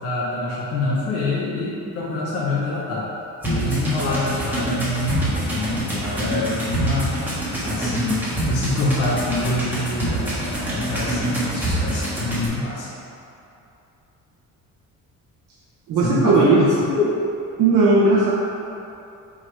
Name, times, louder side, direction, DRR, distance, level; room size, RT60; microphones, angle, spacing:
voice 1, 0.0-3.1 3.4-7.2 7.6-12.9 16.0-17.1, left 2 dB, 50° left, -6 dB, 0.9 m, -25 dB
sound 1, 3.4-12.5, right 1 dB, 5° right, 1.4 m, -25 dB
voice 2, 15.9-16.7 17.6-18.3, right 3 dB, 75° right, -6 dB, 0.9 m, -16 dB
8.0 x 3.8 x 3.3 m, 2.8 s
cardioid pair, 165°, 31 cm